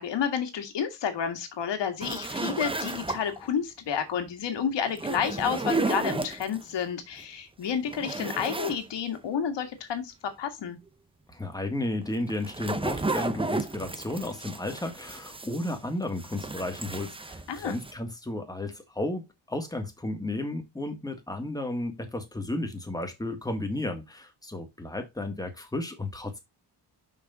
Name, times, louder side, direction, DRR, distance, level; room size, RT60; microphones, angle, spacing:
voice 1, 0.0-10.8 17.5-17.8, left 7 dB, 85° left, 1.9 m, -30 dB
sound 1, 2.0-3.5 4.9-6.6 7.2-7.3 7.7-8.8 9.1-9.2 12.1-15.9 16.2-17.9, right 3 dB, 15° right, 0.7 m, -33 dB
voice 2, 11.3-26.4, left 1 dB, 10° left, 1.9 m, -33 dB
6.0 x 5.9 x 4.0 m
cardioid pair, 115°, 41 cm